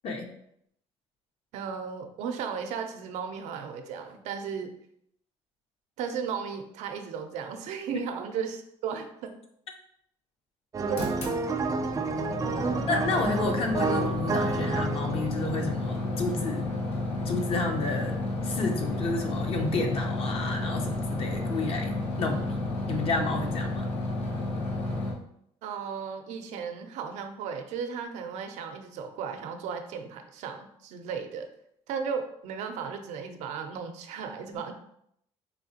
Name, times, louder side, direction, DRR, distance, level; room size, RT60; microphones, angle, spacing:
voice 1, 1.5-4.7 6.0-9.4 10.9-11.1 12.7-12.9 25.6-31.5 31.9-34.7, right 6 dB, 85° right, 6 dB, 0.5 m, -35 dB
sound 1, 10.7-16.2 16.8-16.9, right 4 dB, 30° right, 0.3 m, -30 dB
sound 2, 10.9-25.1, left 2 dB, 70° left, 1.0 m, -32 dB
voice 2, 12.9-16.7 17.3-22.6 22.9-23.9, left 3 dB, 55° left, 3 dB, 0.7 m, -31 dB
4.1 x 2.8 x 2.8 m, 0.73 s
cardioid pair, 110°, 12 cm